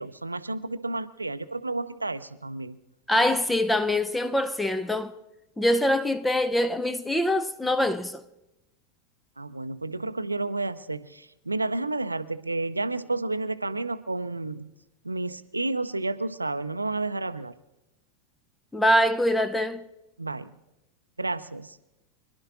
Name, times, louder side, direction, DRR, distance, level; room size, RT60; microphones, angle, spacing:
voice 1, 0.0-2.8 9.4-14.7 15.0-17.5 20.2-20.5 21.2-21.8, right 2 dB, 90° right, 0.5 m, -31 dB
voice 2, 3.1-5.1 5.6-8.2 18.7-19.8, left 1 dB, 5° left, 0.6 m, -24 dB
26.0 x 11.5 x 2.5 m
figure-of-eight pair, 85°, 0 cm